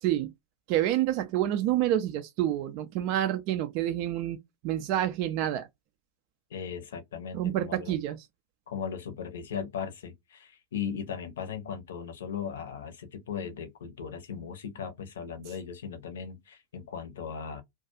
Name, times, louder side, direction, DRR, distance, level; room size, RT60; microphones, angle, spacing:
voice 1, 0.7-4.4 4.6-5.7 7.3-8.3, right 12 dB, 45° right, 0.3 m, -28 dB
voice 2, 6.5-8.0 8.7-17.6, left 7 dB, 60° left, 0.7 m, -37 dB
2.3 x 2.3 x 2.6 m
figure-of-eight pair, 90°, 0 cm